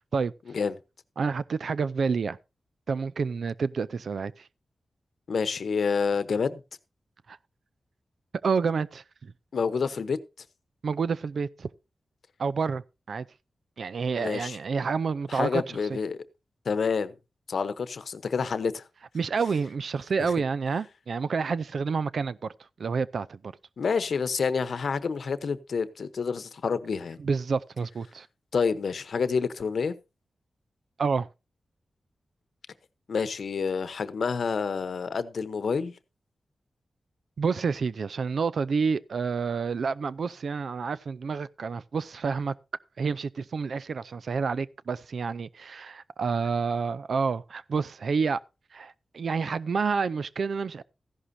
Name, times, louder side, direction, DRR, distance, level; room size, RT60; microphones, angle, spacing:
voice 1, 1.2-2.4 2.9-4.5 7.3-7.4 8.4-9.3 10.8-11.7 12.4-12.8 13.1-13.3 13.8-15.6 15.9-16.0 19.1-22.5 22.8-23.5 27.2-28.3 31.0-31.3 37.4-42.5 43.0-48.4 48.7-50.8, right 5 dB, 75° right, 0.5 m, -29 dB
voice 2, 5.3-6.6 9.5-10.2 14.2-14.6 15.3-16.2 16.6-17.1 17.5-18.8 20.2-20.3 23.8-27.2 28.5-29.9 33.1-35.9, left 5 dB, 75° left, 0.9 m, -28 dB
14.5 x 11.0 x 2.7 m
cardioid pair, 65°, 0 cm